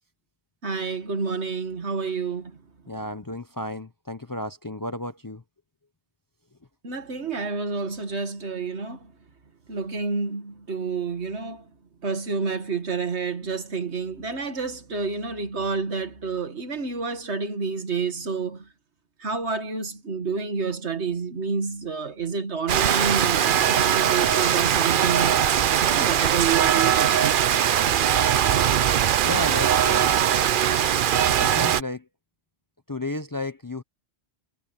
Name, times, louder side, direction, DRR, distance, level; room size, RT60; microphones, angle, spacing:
voice 1, 0.6-2.6 6.8-9.0 9.7-11.6 12.0-18.7 19.2-25.4 25.8-27.4, right 5 dB, 75° right, 2.1 m, -29 dB
voice 2, 2.9-5.4 29.2-30.3 31.4-32.1 32.9-33.8, left 1 dB, 20° left, 0.6 m, -33 dB
Rain, 22.7-31.8, right 9 dB, 55° right, 0.7 m, -21 dB
omnidirectional pair, 1.1 m